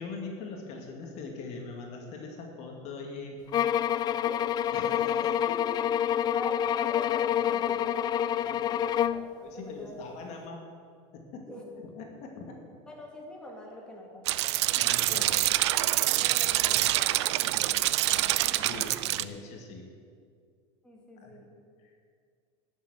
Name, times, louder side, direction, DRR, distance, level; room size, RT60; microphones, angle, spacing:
voice 1, 0.0-3.4 4.7-4.9 5.5-6.0 8.4-9.0 9.3-10.6 11.1-11.5 11.7-12.6 14.6-15.4 18.5-19.9 21.2-21.4 21.8-21.9, left 4 dB, 50° left, 2 dB, 2.2 m, -42 dB
sound 1, 3.5-9.3, left 10 dB, 30° left, 0.3 m, -27 dB
voice 2, 4.8-5.2 6.3-10.0 11.5-11.6 12.9-14.6 15.1-15.3 15.8-18.7 20.8-21.5, left 1 dB, 5° left, -2 dB, 2.5 m, -44 dB
sound 2, 14.3-19.2, right 16 dB, 90° right, 0.5 m, -26 dB
12.0 x 7.4 x 8.9 m, 2.2 s
supercardioid pair, 125°, 14 cm